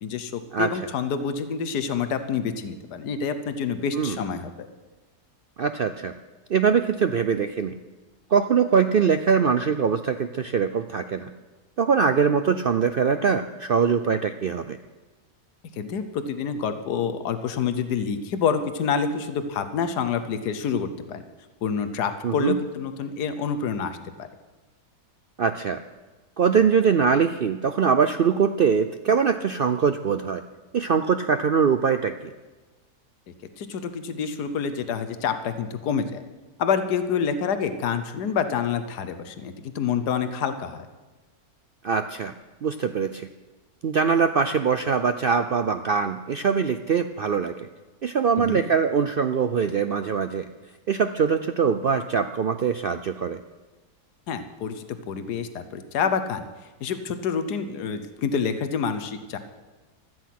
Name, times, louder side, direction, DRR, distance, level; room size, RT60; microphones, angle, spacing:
voice 1, 0.0-4.7 15.7-21.2 21.6-24.3 33.6-36.2 36.6-40.9 48.4-48.6 54.3-56.5 56.8-59.4, left 6 dB, 85° left, 9 dB, 1.5 m, -27 dB
voice 2, 0.5-0.9 4.0-4.2 5.6-6.1 6.5-7.8 8.3-11.3 11.8-14.8 22.2-22.6 25.4-25.8 26.4-30.4 30.7-32.3 41.8-42.3 42.6-43.3 43.8-47.5 48.0-50.5 50.9-53.4, right 6 dB, 75° right, 9 dB, 0.5 m, -22 dB
16.5 x 13.0 x 5.9 m, 1.2 s
omnidirectional pair, 1.7 m